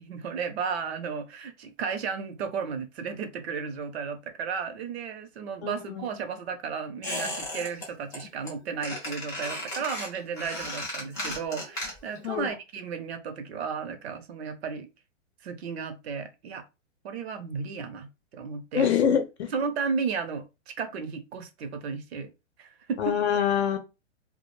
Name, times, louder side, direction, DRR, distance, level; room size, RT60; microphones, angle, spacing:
voice 1, 0.0-14.9 15.4-16.6 17.0-18.9 19.5-22.3 22.6-23.1, right 5 dB, 55° right, 0.6 m, -34 dB
voice 2, 5.6-6.0 12.2-12.5 18.7-19.5 23.0-23.8, left 8 dB, 60° left, 0.7 m, -25 dB
Squeak, 7.0-7.9 8.1-8.5 8.8-12.2 12.5-12.6, left 1 dB, 10° left, 0.4 m, -35 dB
2.3 x 2.1 x 3.1 m
hypercardioid pair, 140°, 38 cm